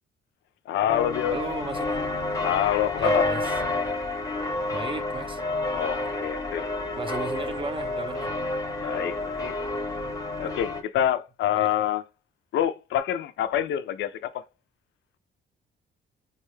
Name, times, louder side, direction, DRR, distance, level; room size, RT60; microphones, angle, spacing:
voice 1, 0.7-1.4 2.4-3.3 5.7-6.7 8.8-9.6 10.4-12.1 12.5-14.5, left 11 dB, 70° left, 0.4 m, -26 dB
sound 1, 0.9-10.8, left 2 dB, 15° left, 0.6 m, -29 dB
voice 2, 1.3-2.1 3.0-3.5 4.7-5.4 7.0-8.3 11.5-11.7, right 4 dB, 25° right, 0.5 m, -35 dB
3.9 x 2.3 x 3.1 m
cardioid pair, 90°, 20 cm